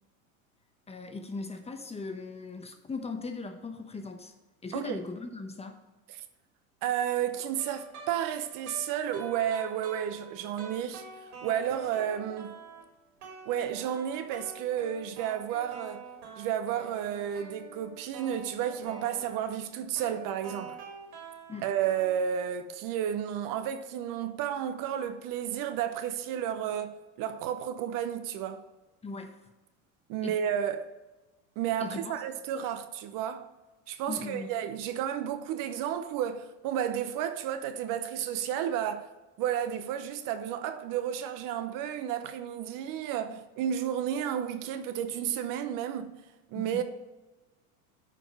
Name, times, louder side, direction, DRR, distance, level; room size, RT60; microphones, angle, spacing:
voice 1, 0.9-4.3 4.6-5.8 21.5-21.7 29.0-29.4 30.2-30.4 31.8-32.1 34.1-34.5 46.5-46.8, left 3 dB, 15° left, 0.9 m, -39 dB
voice 2, 6.8-11.0 11.4-12.5 13.5-16.0 16.4-20.8 21.6-26.9 27.2-28.6 30.1-30.8 31.6-33.5 33.9-39.1 39.4-46.1 46.5-46.8, right 9 dB, 50° right, 0.9 m, -32 dB
sound 1, 7.4-12.9 13.2-22.2, right 4 dB, 85° right, 3.2 m, -47 dB
8.9 x 5.1 x 5.0 m
hypercardioid pair, 100°, 42 cm